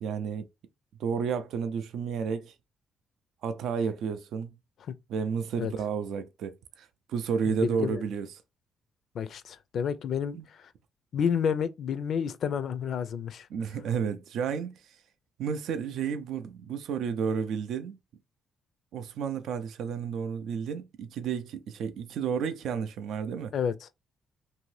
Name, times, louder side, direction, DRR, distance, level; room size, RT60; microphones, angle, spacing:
voice 1, 0.0-0.5 1.0-2.5 3.4-4.5 5.1-8.3 10.3-10.5 13.5-14.7 15.4-18.0 18.9-23.5, right 6 dB, 75° right, 0.4 m, -31 dB
voice 2, 7.5-8.0 9.1-10.6 11.1-13.5 23.5-23.9, left 7 dB, 65° left, 0.3 m, -30 dB
2.8 x 2.6 x 3.1 m
cardioid pair, 90°, 0 cm